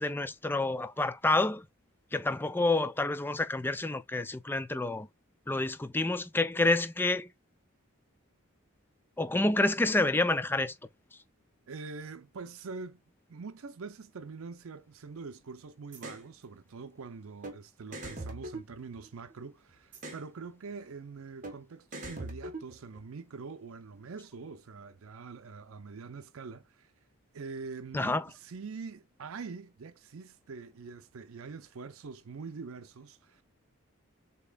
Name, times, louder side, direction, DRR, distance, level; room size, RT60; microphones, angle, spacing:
voice 1, 0.0-1.6 2.1-5.1 5.5-7.3 9.2-10.7 27.9-28.2, left 2 dB, 10° left, 0.3 m, -28 dB
voice 2, 11.7-13.0 13.3-26.9 27.3-33.4, right 4 dB, 80° right, 0.5 m, -44 dB
sound 1, 15.9-16.2 17.4-17.6 17.9-19.3 19.9-20.3 21.4-21.6 21.9-23.0, right 2 dB, 40° right, 1.2 m, -41 dB
6.6 x 2.9 x 2.3 m
head